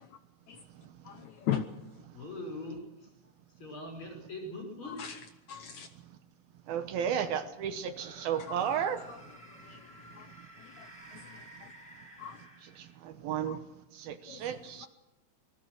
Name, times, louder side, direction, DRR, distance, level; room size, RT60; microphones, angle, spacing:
voice 1, 1.0-1.7 4.8-5.2 5.5-5.9 8.5-8.6 9.6-9.8 10.1-10.3 10.8-10.9 11.3-11.4 12.2-12.4 13.4-13.6 14.3-14.4, left 10 dB, 80° left, 8 dB, 1.6 m, -36 dB
voice 2, 2.1-3.1 3.6-5.2, left 1 dB, 30° left, 2 dB, 6.3 m, -42 dB
voice 3, 6.7-9.0 12.8-13.6 13.9-14.9, right 8 dB, 75° right, 9 dB, 2.7 m, -33 dB
sound 1, 7.9-13.1, right 1 dB, ahead, 5.7 m, -53 dB
27.0 x 20.5 x 6.4 m, 0.91 s
omnidirectional pair, 4.7 m